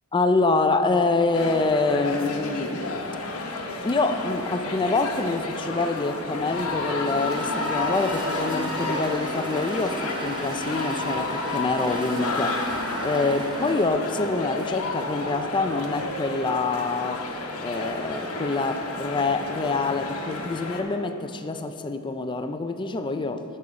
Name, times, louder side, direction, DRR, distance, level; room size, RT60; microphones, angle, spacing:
voice 1, 0.1-3.1 3.8-17.2 17.6-23.4, left 3 dB, 20° left, 8 dB, 0.4 m, -26 dB
sound 1, 1.3-20.8, left 2 dB, 70° left, 1.0 m, -31 dB
sound 2, 7.1-13.9, right 1 dB, 20° right, 0.8 m, -34 dB
13.5 x 5.6 x 4.7 m, 3.0 s
head